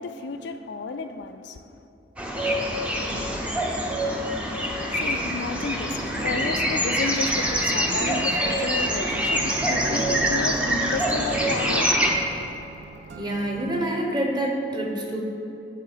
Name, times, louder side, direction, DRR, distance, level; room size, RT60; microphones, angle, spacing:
voice 1, 0.0-1.8 4.5-12.5, left 4 dB, 70° left, 8 dB, 0.4 m, -33 dB
sound 1, 2.2-12.1, equal, 5° right, 0.6 m, -25 dB
sound 2, 3.0-13.7, right 2 dB, 70° right, 0.5 m, -42 dB
voice 2, 13.1-15.2, right 1 dB, 25° right, -1 dB, 0.9 m, -27 dB
10.0 x 3.7 x 4.9 m, 2.8 s
head